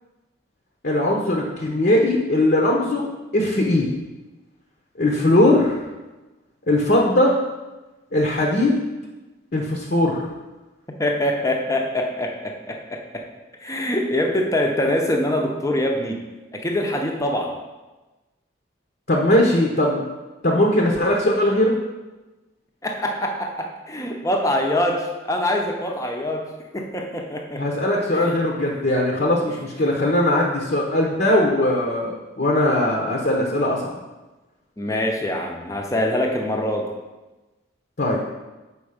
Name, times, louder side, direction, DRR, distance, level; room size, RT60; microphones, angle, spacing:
voice 1, 0.8-3.9 5.0-5.8 6.7-7.4 8.1-8.8 9.5-10.3 19.1-20.0 20.4-21.7 27.6-33.8 38.0-38.2, left 1 dB, 50° left, -1 dB, 0.9 m, -20 dB
voice 2, 11.0-13.2 13.6-16.2 16.5-17.5 22.8-26.4 26.7-27.6 28.1-28.3 29.5-29.6 34.8-36.9, left 1 dB, 15° left, 2 dB, 0.7 m, -24 dB
7.1 x 5.0 x 5.0 m, 1.1 s
head